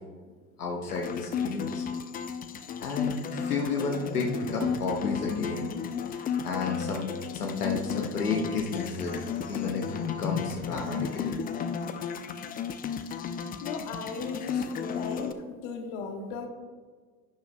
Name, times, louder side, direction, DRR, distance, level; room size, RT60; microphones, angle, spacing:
voice 1, 0.6-1.8 2.8-5.7 6.4-11.4, left 4 dB, 80° left, 1 dB, 1.0 m, -32 dB
sound 1, 0.9-15.3, left 7 dB, 20° left, 0.5 m, -33 dB
voice 2, 13.6-16.5, left 4 dB, 50° left, 5 dB, 1.3 m, -37 dB
11.5 x 9.3 x 2.2 m, 1.5 s
figure-of-eight pair, 75°, 45 cm